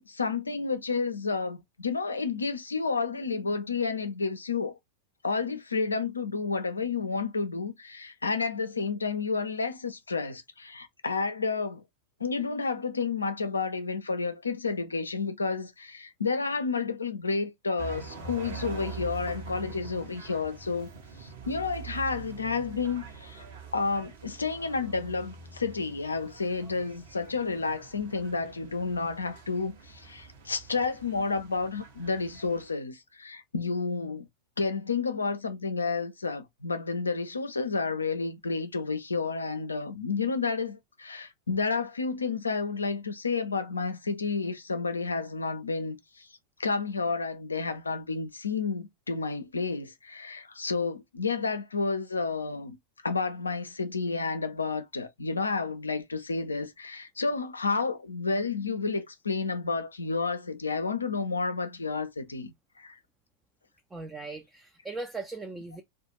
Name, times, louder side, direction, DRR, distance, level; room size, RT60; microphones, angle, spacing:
voice 1, 0.0-4.7 5.2-11.8 12.2-20.9 21.2-23.4 23.7-34.3 34.6-46.3 46.6-52.8 53.0-63.0, left 4 dB, 75° left, 0.4 m, -31 dB
sound 1, 17.8-32.7, right 5 dB, 60° right, 0.7 m, -44 dB
voice 2, 63.9-65.8, right 3 dB, 10° right, 0.4 m, -38 dB
2.3 x 2.2 x 2.9 m
figure-of-eight pair, 90°, 0 cm